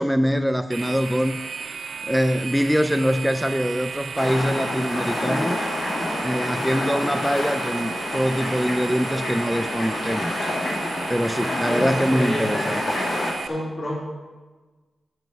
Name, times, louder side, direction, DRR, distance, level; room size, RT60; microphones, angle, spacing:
voice 1, 0.0-1.4 2.0-5.7 6.2-10.4 11.1-13.0, equal, ahead, 9 dB, 0.3 m, -23 dB
sound 1, 0.7-13.5, right 6 dB, 80° right, 0.5 m, -34 dB
sound 2, 4.2-13.3, left 1 dB, 90° left, 2.3 m, -28 dB
voice 2, 11.5-12.7 13.4-14.0, left 1 dB, 45° left, -6 dB, 2.7 m, -30 dB
8.2 x 7.5 x 5.7 m, 1.3 s
wide cardioid pair, 125°, 0 cm